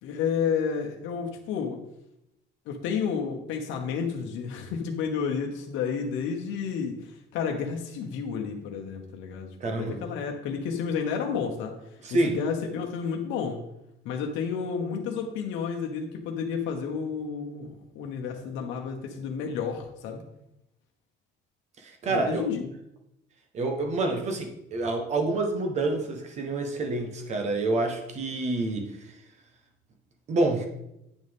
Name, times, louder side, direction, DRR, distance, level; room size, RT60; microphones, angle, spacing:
voice 1, 0.0-1.8 2.7-11.7 12.1-13.6 14.0-20.2 22.1-22.7, left 6 dB, 80° left, 2 dB, 1.0 m, -31 dB
voice 2, 9.6-10.0 12.0-12.4 21.8-22.4 23.5-28.9 30.3-30.7, right 2 dB, 35° right, 4 dB, 1.1 m, -27 dB
9.1 x 6.6 x 3.5 m, 0.85 s
cardioid pair, 170°, 19 cm